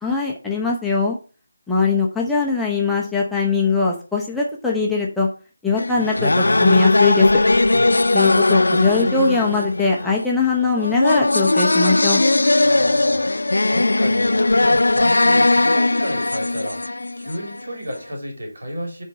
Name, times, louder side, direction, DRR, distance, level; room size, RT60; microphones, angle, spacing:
voice 1, 0.0-1.2 1.7-5.3 5.6-7.4 8.1-12.2, left 4 dB, ahead, 0.9 m, -21 dB
sound 1, 5.8-17.6, left 2 dB, 70° left, 0.4 m, -18 dB
voice 2, 12.6-19.0, equal, 65° right, 3.1 m, -32 dB
9.9 x 3.6 x 4.3 m
figure-of-eight pair, 155°, 0 cm